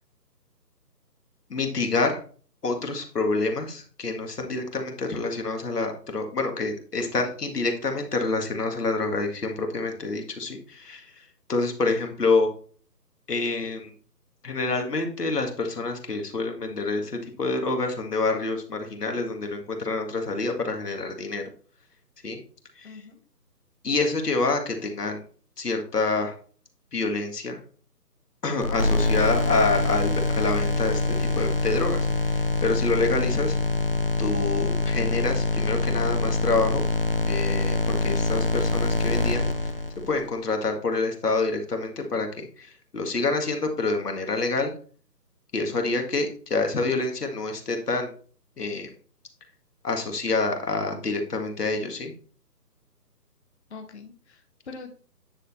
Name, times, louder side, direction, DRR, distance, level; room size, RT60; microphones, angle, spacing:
voice 1, 1.5-2.2 2.6-12.5 13.3-13.9 14.4-21.4 22.2-22.4 22.8-23.0 23.8-25.2 25.6-26.3 26.9-27.6 28.4-33.6 34.2-36.8 37.2-39.7 40.1-44.7 45.5-48.1 48.6-48.9 49.8-52.1, left 3 dB, 70° left, 4 dB, 2.0 m, -27 dB
voice 2, 22.8-23.2 53.7-55.0, left 4 dB, 40° left, 3 dB, 1.1 m, -43 dB
sound 1, 28.6-40.3, left 2 dB, 40° right, 0.4 m, -25 dB
9.9 x 4.0 x 4.2 m, 0.43 s
figure-of-eight pair, 160°, 49 cm